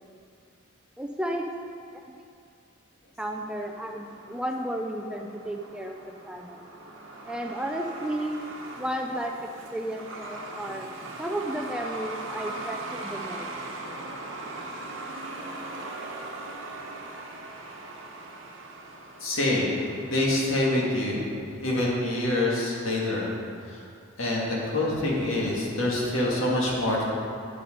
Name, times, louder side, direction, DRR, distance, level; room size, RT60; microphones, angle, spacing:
voice 1, 1.0-1.4 3.2-6.6 7.3-8.4 8.8-10.9 11.2-13.5, right 1 dB, 5° right, 2 dB, 0.4 m, -33 dB
Truck, 3.3-20.7, right 2 dB, 60° right, 1.1 m, -40 dB
voice 2, 19.2-19.7 20.1-21.3 21.6-23.3 23.7-23.9 24.2-27.0, left 1 dB, 65° left, -4 dB, 2.1 m, -26 dB
9.4 x 6.7 x 5.3 m, 2.4 s
head